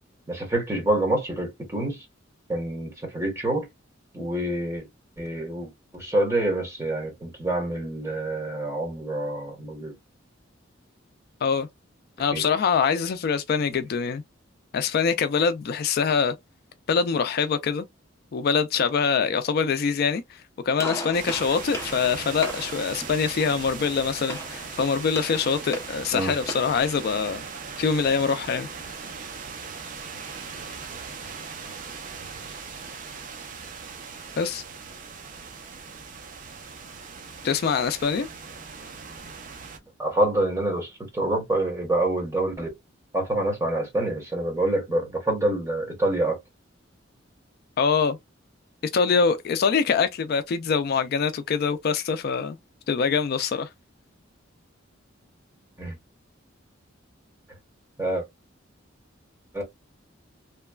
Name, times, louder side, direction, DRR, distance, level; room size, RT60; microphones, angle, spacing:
voice 1, 0.3-2.0 2.5-3.7 4.1-4.9 5.2-9.9 12.3-12.4 13.7-13.8 26.1-26.3 40.0-42.7 43.1-46.4 55.8-56.0 58.0-58.2 59.5-59.6, right 1 dB, 15° right, 1.3 m, -26 dB
voice 2, 12.2-14.2 14.7-16.3 16.9-17.9 18.3-27.4 27.8-28.7 34.4-34.6 37.4-38.3 47.8-48.2 48.9-52.6 52.9-53.7, left 5 dB, 55° left, 0.3 m, -24 dB
Gunshot gunfire, 20.8-26.8, equal, 15° left, 0.8 m, -38 dB
sound 1, 21.1-39.8, right 5 dB, 45° right, 0.6 m, -39 dB
3.0 x 2.2 x 2.3 m
head